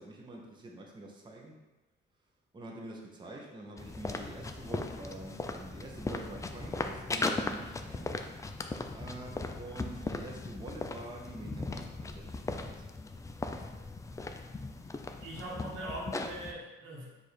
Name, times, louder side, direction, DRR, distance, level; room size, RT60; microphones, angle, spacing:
voice 1, 0.0-1.6 2.5-8.1 8.9-12.9, right 2 dB, 25° right, -1 dB, 0.8 m, -46 dB
sound 1, 3.8-16.5, left 3 dB, 15° left, 0.3 m, -38 dB
voice 2, 15.2-17.1, right 1 dB, 90° right, -4 dB, 1.2 m, -41 dB
4.8 x 2.6 x 4.3 m, 1.1 s
cardioid pair, 90°, 20 cm